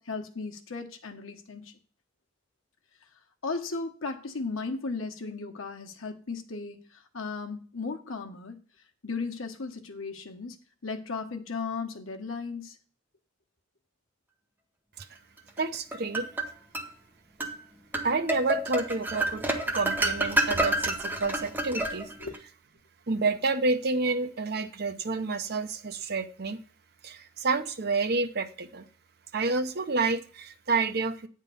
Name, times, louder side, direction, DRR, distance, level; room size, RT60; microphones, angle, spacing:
voice 1, 0.0-1.7 3.4-8.6 9.0-12.8 22.2-22.3, left 4 dB, 85° left, 4 dB, 1.1 m, -36 dB
sound 1, 15.6-16.9 17.4-17.6 17.9-22.4, right 1 dB, 10° right, 0.9 m, -29 dB
voice 2, 15.6-16.3 18.0-19.4 19.7-22.1 23.1-26.6 27.0-28.8 29.3-31.3, right 3 dB, 50° right, 8 dB, 0.7 m, -29 dB
9.3 x 3.7 x 6.8 m, 0.41 s
head